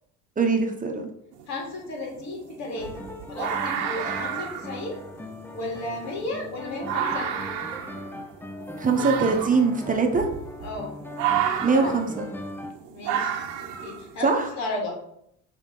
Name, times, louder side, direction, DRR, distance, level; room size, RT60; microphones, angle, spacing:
voice 1, 0.4-1.1 8.8-10.3 11.6-12.3 14.2-14.4, right 4 dB, 25° right, 3 dB, 1.0 m, -22 dB
sound 1, 1.3-1.4 1.9-14.4, right 9 dB, 85° right, 1.0 m, -31 dB
voice 2, 1.5-5.0 5.5-7.3 10.6-10.9 11.7-12.0 12.9-15.1, left 2 dB, 65° left, -1 dB, 2.6 m, -34 dB
sound 2, 2.7-12.7, left 1 dB, 5° left, 0.6 m, -39 dB
6.1 x 3.6 x 5.4 m, 0.73 s
cardioid pair, 105°, 30 cm